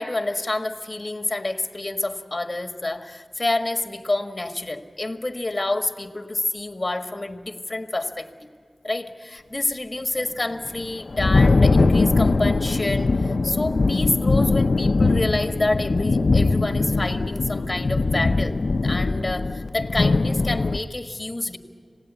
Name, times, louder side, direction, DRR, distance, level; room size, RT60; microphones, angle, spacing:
voice 1, 0.0-8.5 8.8-18.6 18.8-21.6, left 2 dB, 35° left, 7 dB, 1.6 m, -28 dB
Thunder, 10.6-20.8, left 3 dB, 70° left, 0.7 m, -21 dB
26.5 x 18.0 x 8.3 m, 2.2 s
wide cardioid pair, 55°, 0 cm